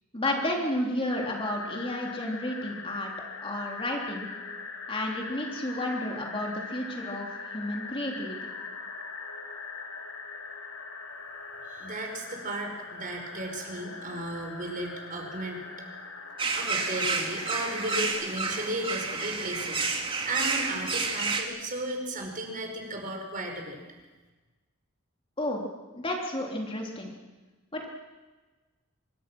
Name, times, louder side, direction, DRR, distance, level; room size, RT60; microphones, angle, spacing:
voice 1, 0.1-3.1 3.4-4.3 4.9-8.4 25.4-25.6 25.9-27.1 27.7-27.9, left 1 dB, 25° left, 0 dB, 3.4 m, -31 dB
sound 1, 1.1-18.1, left 4 dB, 85° left, 4.5 m, -41 dB
voice 2, 11.7-15.7 16.6-23.8, right 1 dB, 40° right, 2 dB, 5.2 m, -35 dB
sound 2, 16.4-21.4, right 4 dB, 25° right, 2.5 m, -30 dB
25.0 x 24.0 x 6.2 m, 1.2 s
head